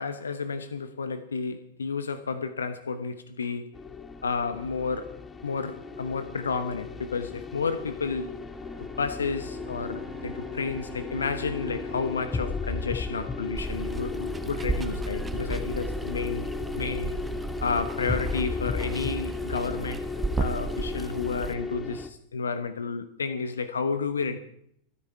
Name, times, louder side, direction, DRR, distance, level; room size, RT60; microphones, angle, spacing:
voice 1, 0.0-3.7 4.2-5.1 5.4-8.3 9.0-16.5 16.7-17.1 17.6-20.0 20.4-24.4, left 5 dB, 70° left, 1.0 m, -31 dB
sound 1, 3.7-22.1, left 4 dB, 15° left, 1.3 m, -35 dB
Bowed string instrument, 8.2-13.6, right 3 dB, 45° right, 2.4 m, -46 dB
Water, 13.6-21.5, right 3 dB, 15° right, 1.5 m, -34 dB
25.5 x 10.0 x 4.7 m
figure-of-eight pair, 90°, 0 cm